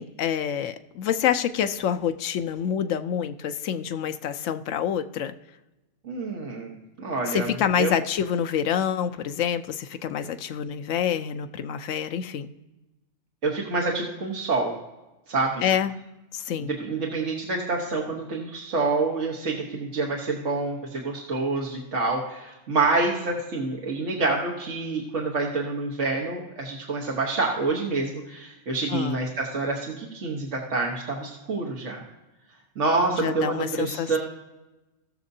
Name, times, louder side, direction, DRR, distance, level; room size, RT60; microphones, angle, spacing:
voice 1, 0.0-5.3 7.3-12.5 15.6-15.9 16.3-16.8 28.9-29.2 33.1-34.2, left 8 dB, 90° left, 9 dB, 1.0 m, -27 dB
voice 2, 6.0-7.5 7.8-8.0 13.4-14.7 15.3-15.6 16.8-32.0 32.8-34.2, right 3 dB, 75° right, -2 dB, 1.6 m, -27 dB
19.0 x 6.6 x 2.7 m, 1.1 s
omnidirectional pair, 1.3 m